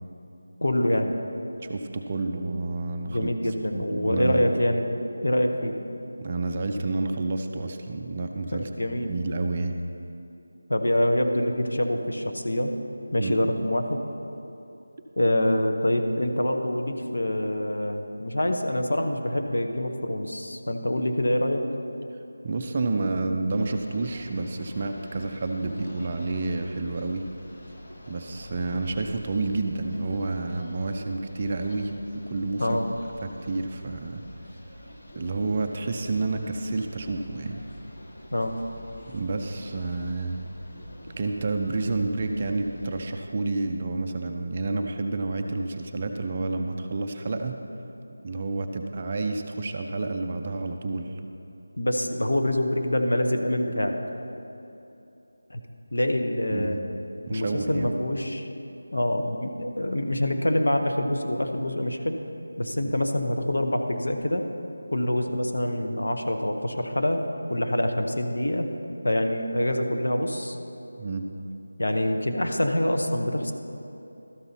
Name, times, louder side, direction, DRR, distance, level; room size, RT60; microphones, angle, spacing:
voice 1, 0.6-1.2 3.0-4.9 5.2-5.7 8.5-9.1 10.7-12.8 13.1-14.0 15.2-21.6 32.6-32.9 38.3-38.6 51.8-54.0 55.5-55.6 55.9-56.8 57.3-58.5 58.9-62.2 62.6-64.5 64.9-67.2 67.5-68.7 69.0-70.6 71.8-73.5, left 1 dB, 80° left, 5 dB, 0.9 m, -25 dB
voice 2, 1.6-4.4 6.2-9.7 13.2-13.3 22.4-27.2 28.1-31.9 32.3-32.8 33.2-34.2 35.2-37.6 39.1-40.4 41.2-47.6 48.2-51.2 56.5-56.9 57.3-57.9 62.8-62.9 71.0-71.2, right 3 dB, 20° right, 4 dB, 0.3 m, -29 dB
sound 1, 23.5-43.2, equal, 30° left, 0.7 m, -46 dB
13.0 x 5.6 x 4.1 m, 2.9 s
figure-of-eight pair, 180°, 0 cm